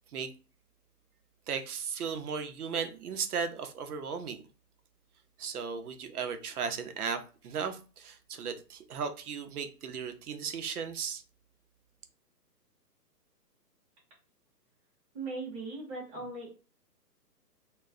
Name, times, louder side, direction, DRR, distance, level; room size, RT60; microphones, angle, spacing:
voice 1, 1.5-4.4 5.4-11.2, right 6 dB, 65° right, 0.7 m, -36 dB
voice 2, 15.1-16.5, right 3 dB, 10° right, 0.8 m, -38 dB
2.3 x 2.0 x 3.6 m
hypercardioid pair, 145°, 49 cm